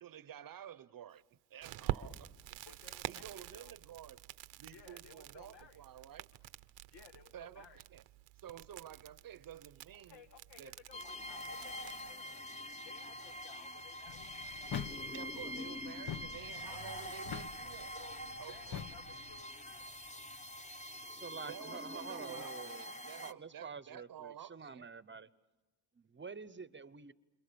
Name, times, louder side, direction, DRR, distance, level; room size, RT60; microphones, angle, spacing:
voice 1, 0.0-2.6 3.1-4.2 4.6-6.3 7.3-8.0 8.4-10.2 10.6-10.8 15.1-17.9 18.4-18.9 21.5-24.9, right 10 dB, 50° right, 0.9 m, -51 dB
Crackle, 1.6-12.1, right 14 dB, 90° right, 1.0 m, -47 dB
voice 2, 2.7-3.8 4.7-5.8 6.9-7.8 9.9-12.4 12.8-14.3 15.6-15.7 16.7-17.1 17.9-19.8, left 6 dB, 70° left, 2.0 m, -59 dB
sound 1, 10.9-23.3, equal, 15° left, 1.1 m, -45 dB
sound 2, 14.1-19.4, left 8 dB, 50° left, 1.3 m, -46 dB
voice 3, 21.0-25.3 25.9-27.1, right 5 dB, 25° right, 0.9 m, -48 dB
29.0 x 27.0 x 7.0 m
cardioid pair, 90°, 43 cm